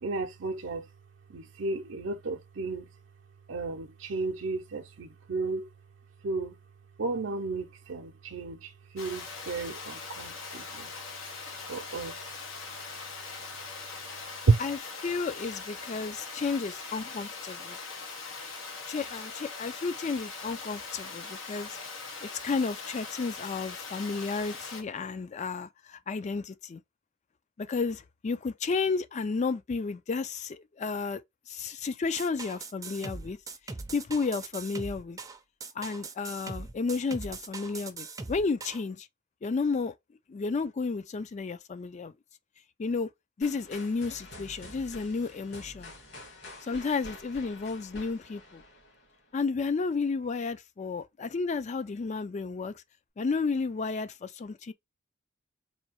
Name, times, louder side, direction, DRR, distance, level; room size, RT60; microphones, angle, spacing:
voice 1, 0.0-0.9 1.3-2.9 3.5-5.7 6.2-6.6 7.0-10.9 11.7-12.3 14.5-14.6, right 3 dB, 75° right, 0.6 m, -32 dB
Water, 9.0-24.8, left 4 dB, 90° left, 1.0 m, -41 dB
voice 2, 14.6-17.8 18.9-21.8 22.2-26.8 27.6-31.2 31.5-33.4 33.9-35.2 35.8-39.1 39.4-39.9 40.3-42.1 42.8-43.1 43.4-45.9 46.6-48.6 49.3-52.8 53.2-54.7, left 4 dB, 35° left, 0.3 m, -32 dB
sound 1, 32.2-38.8, right 3 dB, 15° right, 0.5 m, -41 dB
sound 2, 43.4-49.3, left 1 dB, 60° left, 2.0 m, -48 dB
4.2 x 2.7 x 2.9 m
head